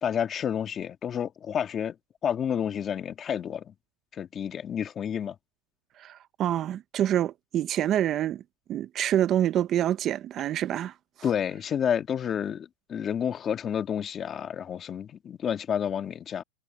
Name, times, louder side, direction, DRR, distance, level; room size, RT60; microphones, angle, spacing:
voice 1, 0.0-2.0 2.2-3.6 4.1-5.4 11.2-16.4, left 8 dB, 25° left, 2.1 m, -30 dB
voice 2, 6.0-8.4 8.7-10.9, right 11 dB, 30° right, 0.5 m, -26 dB
supercardioid pair, 145°, 0 cm